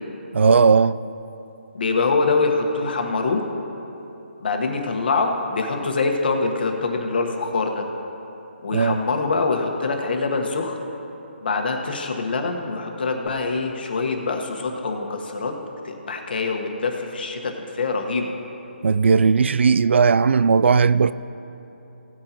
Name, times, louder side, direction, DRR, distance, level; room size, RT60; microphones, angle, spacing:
voice 1, 0.3-1.0 8.7-9.0 18.8-21.1, right 5 dB, 75° right, 0.3 m, -17 dB
voice 2, 1.7-3.4 4.4-7.8 8.6-10.8 11.4-15.5 15.8-18.3, left 3 dB, 55° left, 1.3 m, -24 dB
17.5 x 9.1 x 3.0 m
hypercardioid pair, 165°, 6 cm